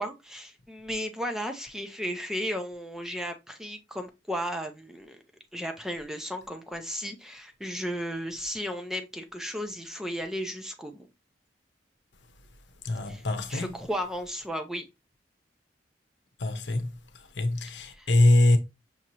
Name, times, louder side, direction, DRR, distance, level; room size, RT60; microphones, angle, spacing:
voice 1, 0.0-5.2 5.5-11.1 13.1-13.2 13.5-14.9 17.9-18.1, equal, 5° right, 0.5 m, -34 dB
voice 2, 12.8-13.7 16.4-18.6, left 1 dB, 80° left, 0.8 m, -24 dB
5.9 x 2.8 x 2.9 m
head